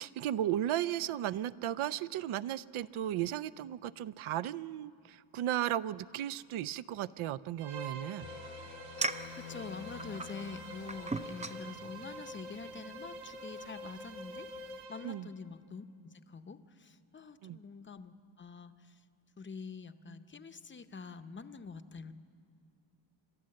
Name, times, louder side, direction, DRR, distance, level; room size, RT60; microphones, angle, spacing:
voice 1, 0.0-8.3 15.0-15.3 17.4-17.6, right 12 dB, 75° right, 18 dB, 0.6 m, -35 dB
Bowed string instrument, 7.6-15.3, right 1 dB, 55° right, 1.4 m, -47 dB
sound 1, 8.2-12.6, left 9 dB, 65° left, 1.0 m, -50 dB
sound 2, 9.0-14.8, right 3 dB, 15° right, 0.4 m, -42 dB
voice 2, 9.4-14.5 14.9-19.0 19.4-22.1, left 4 dB, 25° left, 9 dB, 0.7 m, -46 dB
28.5 x 13.0 x 7.6 m, 2.4 s
wide cardioid pair, 135°, 49 cm